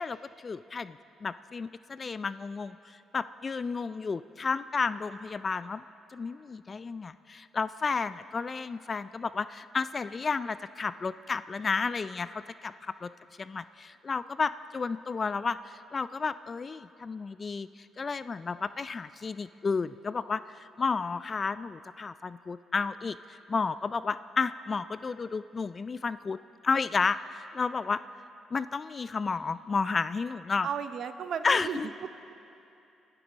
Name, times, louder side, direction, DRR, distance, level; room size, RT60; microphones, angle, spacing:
voice 1, 0.0-5.8 6.1-13.1 13.4-26.4 26.6-28.0 28.5-30.7 31.4-31.9, left 4 dB, 35° left, 14 dB, 0.3 m, -32 dB
voice 2, 30.6-31.8, right 7 dB, 65° right, 10 dB, 0.7 m, -34 dB
28.0 x 11.5 x 4.0 m, 2.8 s
cardioid pair, 90°, 0 cm